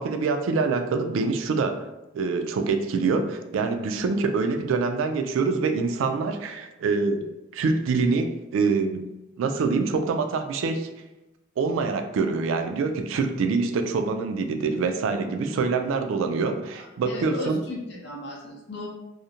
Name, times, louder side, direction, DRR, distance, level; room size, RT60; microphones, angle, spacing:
voice 1, 0.0-1.8 2.1-7.3 7.5-9.1 9.4-10.9 11.6-17.6, right 4 dB, 85° right, 8 dB, 0.3 m, -25 dB
voice 2, 16.7-18.9, left 2 dB, 60° left, -3 dB, 0.7 m, -36 dB
2.4 x 2.1 x 2.7 m, 0.96 s
head